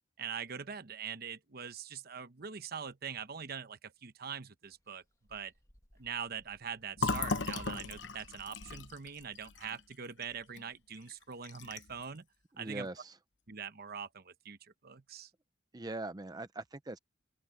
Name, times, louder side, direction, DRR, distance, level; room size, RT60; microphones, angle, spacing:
voice 1, 0.2-5.0 5.3-5.5 6.0-12.2 12.6-12.9 13.5-15.3, right 7 dB, 55° right, 1.0 m, -43 dB
sound 1, 4.6-11.4, equal, 20° left, 2.0 m, -62 dB
Fill (with liquid), 7.0-10.6 11.0-11.1 11.4-12.0, left 4 dB, 80° left, 1.0 m, -37 dB
voice 2, 12.6-13.2 15.7-17.0, right 2 dB, 20° right, 0.6 m, -41 dB
open air
head